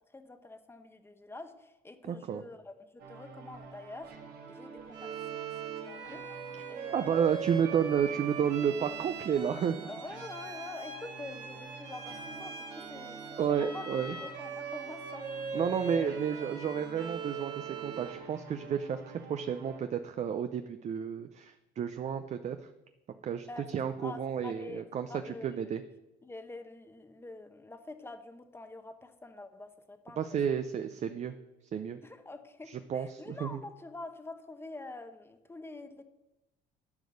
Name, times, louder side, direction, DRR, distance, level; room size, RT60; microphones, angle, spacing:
voice 1, 0.1-4.1 4.5-5.5 5.8-6.3 6.7-7.4 9.9-13.9 14.2-15.3 15.9-16.1 23.5-23.7 24.0-24.8 25.1-25.6 26.2-30.4 32.0-36.0, left 2 dB, 15° left, 8 dB, 0.9 m, -46 dB
voice 2, 2.1-2.4 6.9-9.9 13.4-14.2 15.5-22.6 23.2-25.1 25.4-25.8 30.2-31.3 31.7-32.0 32.7-33.6, right 8 dB, 45° right, 9 dB, 0.5 m, -31 dB
sound 1, 3.0-19.8, right 4 dB, 65° right, 1.8 m, -48 dB
Bowed string instrument, 4.9-18.3, right 6 dB, 85° right, 3.2 m, -41 dB
11.5 x 5.2 x 6.5 m, 0.95 s
cardioid pair, 110°, 17 cm